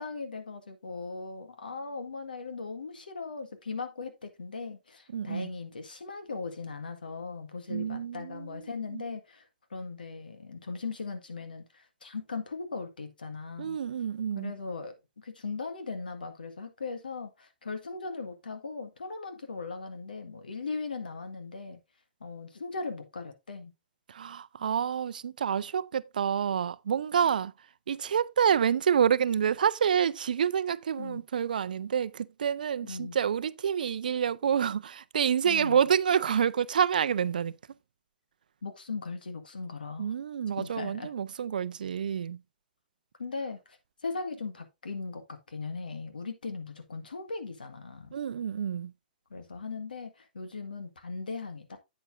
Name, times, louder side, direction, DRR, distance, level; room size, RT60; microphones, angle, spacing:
voice 1, 0.0-13.8 14.4-21.8 22.2-23.7 31.0-31.2 32.8-33.2 35.4-35.8 38.6-40.1 40.6-41.1 43.2-48.1 49.3-51.8, left 4 dB, 80° left, 1.8 m, -38 dB
voice 2, 5.1-5.5 7.7-9.0 13.6-14.5 24.1-27.5 27.9-37.5 40.0-42.4 48.1-48.9, right 8 dB, 70° right, 0.5 m, -28 dB
8.7 x 8.2 x 2.6 m
figure-of-eight pair, 115°, 5 cm